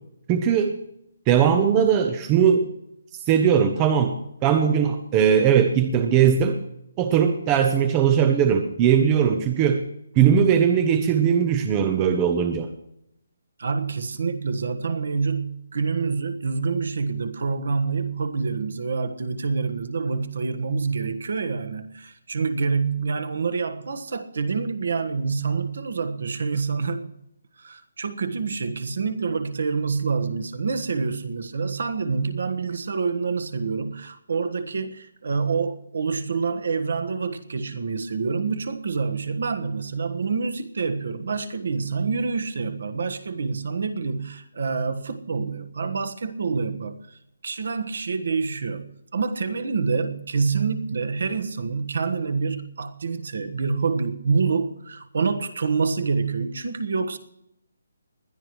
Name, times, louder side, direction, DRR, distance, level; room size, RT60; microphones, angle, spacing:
voice 1, 0.3-0.7 1.3-2.7 3.3-6.6 7.0-9.8 10.2-12.7, right 8 dB, 15° right, 7 dB, 0.6 m, -19 dB
voice 2, 13.6-27.1 27.6-57.2, right 4 dB, 55° right, 9 dB, 1.4 m, -27 dB
20.5 x 12.0 x 3.1 m, 0.79 s
hypercardioid pair, 180°, 0 cm